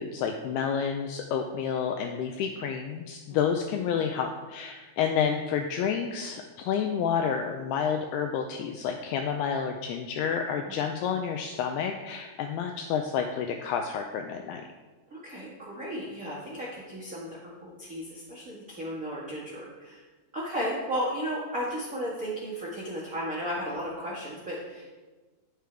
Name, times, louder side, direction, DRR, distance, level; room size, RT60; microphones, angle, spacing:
voice 1, 0.0-14.6, left 7 dB, 85° left, 4 dB, 2.3 m, -29 dB
voice 2, 15.1-20.0 20.3-25.0, equal, 80° right, -6 dB, 0.7 m, -34 dB
9.5 x 9.1 x 3.4 m, 1.3 s
omnidirectional pair, 5.1 m